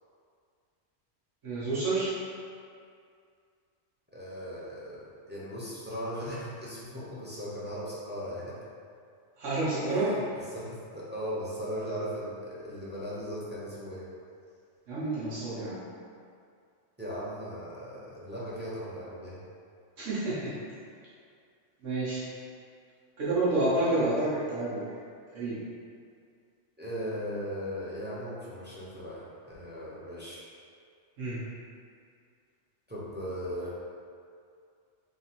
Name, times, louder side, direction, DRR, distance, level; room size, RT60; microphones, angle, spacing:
voice 1, 1.4-2.1 9.4-10.1 14.9-15.8 20.0-20.5 21.8-22.2 23.2-24.9 25.3-25.6 31.2-31.4, right 2 dB, 90° right, -10 dB, 1.4 m, -29 dB
voice 2, 4.1-8.6 9.9-14.1 17.0-19.4 26.8-30.4 32.9-33.7, equal, 10° right, -7 dB, 0.6 m, -38 dB
3.5 x 3.0 x 4.1 m, 2.3 s
omnidirectional pair, 1.3 m